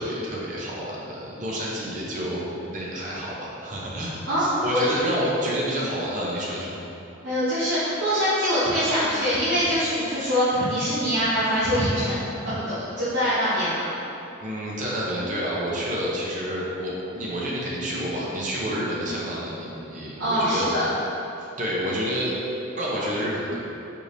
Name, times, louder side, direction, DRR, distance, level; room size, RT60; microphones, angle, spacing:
voice 1, 0.0-6.8 14.4-20.7 21.6-22.4 22.8-23.6, equal, 40° right, -5 dB, 0.7 m, -29 dB
voice 2, 7.2-13.9 20.2-20.9, equal, 70° right, -13 dB, 0.9 m, -24 dB
4.6 x 3.3 x 2.6 m, 2.8 s
head